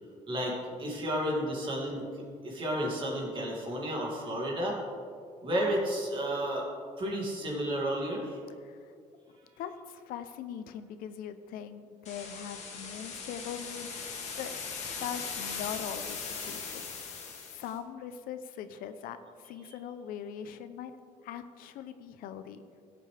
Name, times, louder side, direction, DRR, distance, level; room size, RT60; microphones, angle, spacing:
voice 1, 0.3-2.0 2.4-4.8 5.4-6.7 7.0-8.4, equal, 35° right, -2 dB, 2.6 m, -32 dB
voice 2, 8.6-8.9 9.6-13.9 14.4-14.5 15.0-16.7 17.5-20.9 21.2-22.6, left 9 dB, 85° left, 10 dB, 0.7 m, -41 dB
sound 1, 12.1-17.7, left 5 dB, 50° left, 2.1 m, -39 dB
17.0 x 8.4 x 3.4 m, 2.2 s
cardioid pair, 160°, 14 cm